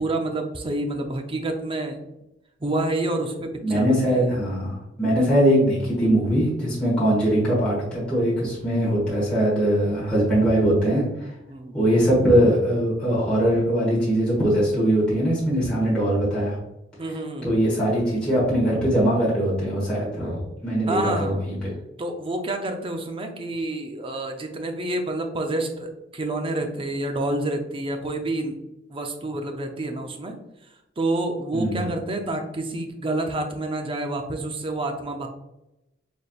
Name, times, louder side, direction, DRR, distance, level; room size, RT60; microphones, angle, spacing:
voice 1, 0.0-2.0 2.6-4.4 11.5-11.8 17.0-17.5 20.9-21.5 22.0-28.6 28.9-30.4 31.0-35.3, right 2 dB, 25° right, 4 dB, 0.5 m, -28 dB
voice 2, 3.6-11.3 11.7-16.6 17.4-21.7 31.5-31.8, right 1 dB, 5° left, -9 dB, 1.4 m, -21 dB
4.1 x 3.4 x 2.3 m, 0.91 s
head